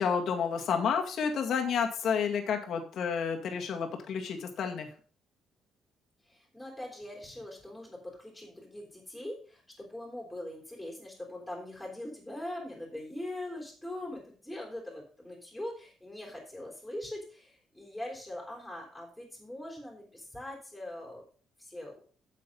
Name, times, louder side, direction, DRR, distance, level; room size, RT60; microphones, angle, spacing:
voice 1, 0.0-4.9, left 6 dB, 60° left, 4 dB, 2.1 m, -30 dB
voice 2, 6.2-21.2 21.6-22.0, left 1 dB, 5° left, -2 dB, 3.9 m, -42 dB
8.5 x 7.4 x 5.6 m, 0.42 s
cardioid pair, 130°, 0 cm